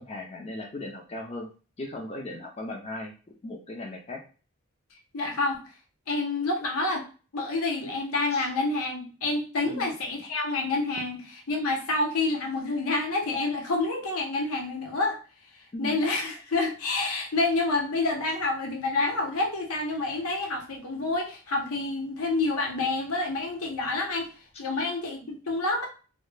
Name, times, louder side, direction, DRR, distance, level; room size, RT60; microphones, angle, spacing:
voice 1, 0.0-1.5 1.8-3.1 3.4-4.2 8.3-8.5 9.7-9.9 15.7-16.0, left 1 dB, 30° left, 0 dB, 0.4 m, -37 dB
voice 2, 5.1-5.6 6.1-7.0 7.3-15.2 15.8-24.3 24.6-25.9, left 2 dB, 80° left, 2 dB, 0.7 m, -28 dB
2.2 x 2.0 x 3.1 m, 0.35 s
head